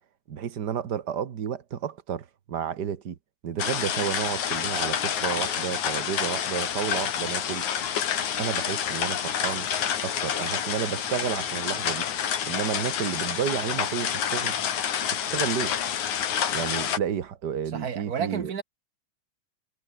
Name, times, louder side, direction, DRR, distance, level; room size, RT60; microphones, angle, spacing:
voice 1, 0.3-3.1 3.4-7.7 8.4-9.7 10.0-12.1 12.5-14.5 15.3-15.8 16.5-18.5, right 8 dB, 90° right, 0.9 m, -31 dB
sound 1, 3.6-17.0, left 9 dB, 60° left, 3.4 m, -28 dB
voice 2, 17.7-18.6, right 7 dB, 40° right, 1.4 m, -31 dB
omnidirectional pair, 4.0 m